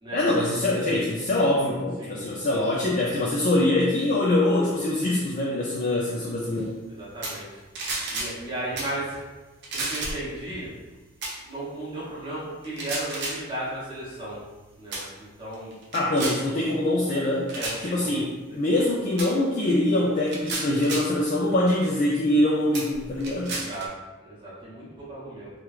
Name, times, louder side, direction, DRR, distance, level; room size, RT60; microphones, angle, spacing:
voice 1, 0.1-6.7 15.9-17.5 17.8-23.6, left 1 dB, 40° left, -4 dB, 0.3 m, -24 dB
voice 2, 7.0-7.6 8.1-9.2 9.7-10.7 11.4-14.4 14.8-15.7 17.5-18.2 18.5-18.8 23.5-23.9 24.2-25.5, right 1 dB, 20° right, -8 dB, 0.9 m, -35 dB
sound 1, 7.2-7.5 7.8-8.4 8.8-9.0 9.6-10.3 11.2-11.4 12.6-13.4 14.3-14.5 14.9-15.1 15.5-16.4 17.5-17.8 19.2-19.3 20.2-21.1 21.9-22.0 22.7-23.9, right 2 dB, 50° right, 0.6 m, -32 dB
3.0 x 2.3 x 3.2 m, 1.2 s
head